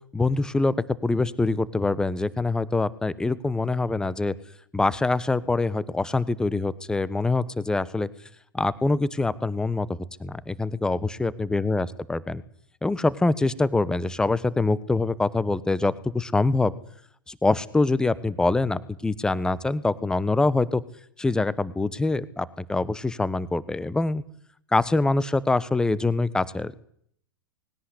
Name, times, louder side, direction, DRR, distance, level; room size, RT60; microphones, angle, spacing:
voice 1, 0.1-0.7 1.0-4.3 4.7-8.1 8.5-12.4 12.8-16.7 17.3-20.8 21.2-24.2 24.7-26.8, left 3 dB, 5° left, 18 dB, 1.2 m, -24 dB
20.5 x 17.5 x 9.9 m, 0.66 s
figure-of-eight pair, 100°, 12 cm